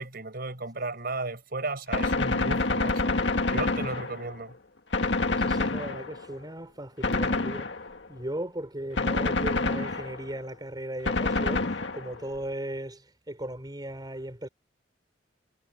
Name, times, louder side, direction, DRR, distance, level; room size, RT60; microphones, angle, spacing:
voice 1, 0.0-3.2 3.5-4.5, right 3 dB, 60° right, 4.7 m, -34 dB
Gunshot gunfire, 1.9-4.4 4.9-6.3 7.0-8.1 9.0-10.3 11.1-12.3, left 3 dB, 85° left, 1.8 m, -27 dB
voice 2, 5.4-7.7 8.1-14.5, right 1 dB, 25° right, 5.2 m, -37 dB
head